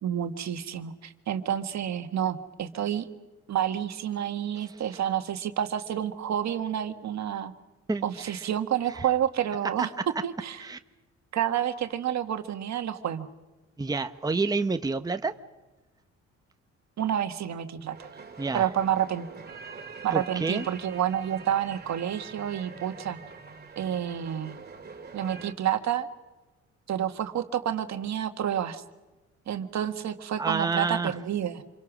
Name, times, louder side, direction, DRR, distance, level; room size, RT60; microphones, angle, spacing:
voice 1, 0.0-3.1 3.5-7.5 8.0-10.6 11.3-13.3 17.0-18.1 18.5-19.3 20.0-23.2 23.7-24.6 25.1-26.1 26.9-28.8 29.5-31.6, right 10 dB, 65° right, 8 dB, 1.6 m, -29 dB
voice 2, 7.9-8.4 9.8-9.9 10.6-10.8 13.8-15.3 18.4-18.7 20.1-20.6 30.4-31.1, right 4 dB, 15° right, 8 dB, 1.0 m, -29 dB
sound 1, 17.9-25.5, right 5 dB, 35° right, 2.7 m, -44 dB
27.5 x 23.0 x 6.2 m, 1.2 s
cardioid pair, 90°, 30 cm